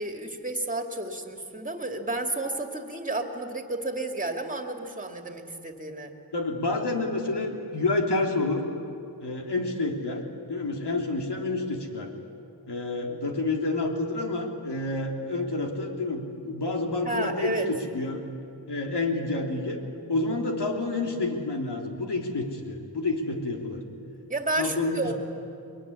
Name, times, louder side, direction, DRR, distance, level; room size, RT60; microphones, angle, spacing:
voice 1, 0.0-6.1 17.0-17.7 24.3-25.1, right 2 dB, 20° right, 4 dB, 2.5 m, -31 dB
voice 2, 6.3-8.6 9.2-10.2 10.5-12.1 12.7-19.8 20.1-23.8 24.6-25.1, left 2 dB, 75° left, 1 dB, 3.2 m, -29 dB
22.5 x 22.5 x 9.9 m, 2.6 s
wide cardioid pair, 85°, 41 cm